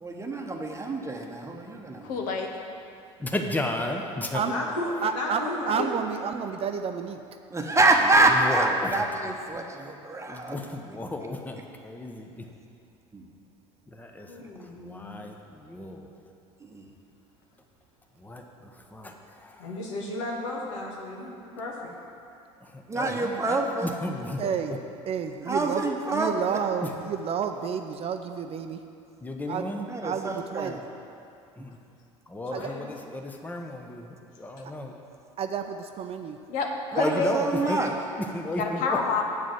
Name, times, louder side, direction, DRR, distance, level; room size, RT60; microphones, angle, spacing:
voice 1, 0.0-2.2 7.5-10.6 13.1-13.2 16.7-16.8 22.9-23.9 25.5-26.3 29.9-30.8 31.6-31.7 36.9-37.9, right 2 dB, 15° right, 2 dB, 1.1 m, -26 dB
voice 2, 2.0-2.5 36.5-37.9 38.6-39.2, left 4 dB, 55° left, 2 dB, 1.2 m, -28 dB
voice 3, 3.2-4.4 8.3-9.1 10.3-12.5 13.9-14.3 14.5-16.1 18.2-18.4 18.9-19.6 22.6-24.5 29.2-29.9 31.6-31.8 32.3-34.9 37.0-37.8 38.1-39.0, left 1 dB, 10° left, 3 dB, 0.9 m, -34 dB
voice 4, 4.5-5.9 14.3-15.2 19.6-21.9 32.5-32.9, left 2 dB, 70° left, -2 dB, 1.7 m, -34 dB
voice 5, 5.0-7.2 24.4-24.8 25.1-28.8 29.5-29.7 30.0-30.8 32.5-32.7 34.6-34.7 35.4-36.4, right 7 dB, 35° right, 7 dB, 0.6 m, -30 dB
8.1 x 5.0 x 7.5 m, 2.5 s
hypercardioid pair, 65°, 16 cm